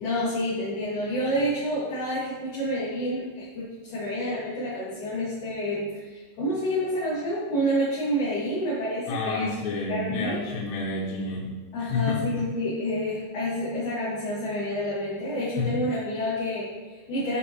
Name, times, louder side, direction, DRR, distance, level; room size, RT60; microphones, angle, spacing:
voice 1, 0.0-9.5 9.9-10.4 11.7-17.4, equal, 55° left, -12 dB, 2.7 m, -28 dB
voice 2, 9.1-12.5 15.6-15.8, left 3 dB, 85° left, -4 dB, 3.5 m, -30 dB
9.0 x 4.4 x 2.9 m, 1.2 s
omnidirectional pair, 5.7 m